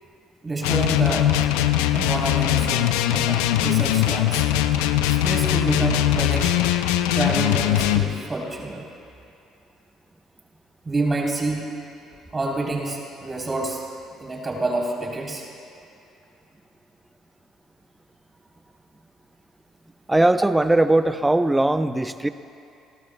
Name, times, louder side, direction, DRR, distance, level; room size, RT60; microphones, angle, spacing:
voice 1, 0.4-1.3 1.9-4.5 5.1-6.6 7.1-8.8 10.8-11.6 12.3-13.8 14.2-15.5, right 2 dB, 30° right, -2 dB, 3.4 m, -28 dB
sound 1, 0.6-8.1, left 13 dB, 80° left, 0.5 m, -21 dB
voice 2, 20.1-22.3, right 2 dB, 10° right, 11 dB, 0.6 m, -19 dB
28.5 x 12.5 x 2.2 m, 2.7 s
hypercardioid pair, 60°, 0 cm